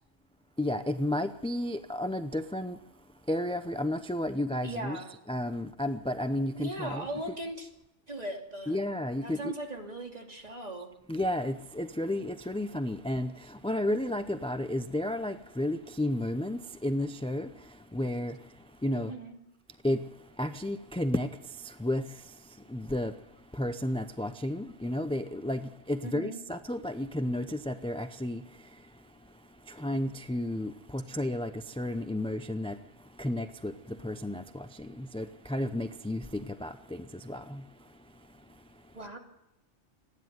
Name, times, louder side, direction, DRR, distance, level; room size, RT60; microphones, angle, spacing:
voice 1, 0.6-2.8 3.3-5.0 5.3-7.1 8.7-9.5 11.1-17.5 17.9-18.4 18.8-19.1 19.8-20.0 20.4-21.3 21.6-22.0 22.7-23.1 23.5-28.4 29.7-32.8 33.2-37.6, left 1 dB, 5° left, 0.4 m, -32 dB
voice 2, 4.6-5.1 6.5-7.7 8.1-8.8 9.2-10.9 18.9-19.4 26.0-26.4 38.9-39.2, right 1 dB, 30° right, 2.9 m, -38 dB
28.0 x 10.5 x 9.4 m
omnidirectional pair, 1.3 m